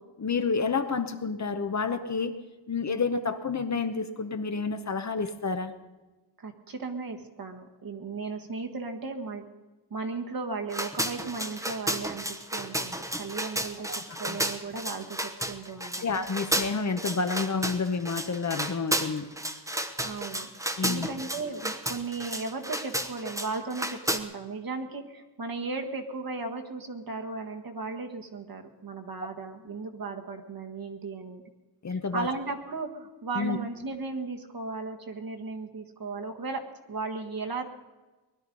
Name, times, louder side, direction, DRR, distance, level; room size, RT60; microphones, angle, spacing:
voice 1, 0.2-2.4 2.7-5.7 13.9-14.0 14.3-14.4 16.0-19.3 20.8-21.1 31.8-32.3 33.3-33.6, left 4 dB, 40° left, 8 dB, 0.9 m, -29 dB
voice 2, 6.4-9.4 9.9-13.9 14.1-16.1 20.0-20.5 20.8-31.4 31.9-36.6 36.9-37.6, right 4 dB, 55° right, 4 dB, 1.6 m, -36 dB
sound 1, 10.7-24.2, right 1 dB, 5° right, 0.9 m, -32 dB
19.5 x 12.0 x 5.4 m, 1.2 s
wide cardioid pair, 130°, 43 cm